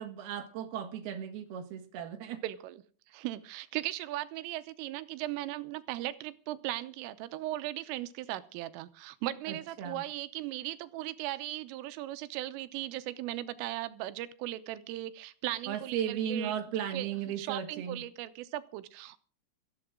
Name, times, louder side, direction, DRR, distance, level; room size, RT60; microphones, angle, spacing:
voice 1, 0.0-2.4 9.5-10.0 15.7-18.0, right 8 dB, 60° right, 6 dB, 3.0 m, -36 dB
voice 2, 2.4-2.8 3.1-16.6 16.9-19.2, right 15 dB, 85° right, 13 dB, 3.4 m, -38 dB
20.0 x 14.0 x 3.8 m, 0.40 s
omnidirectional pair, 5.8 m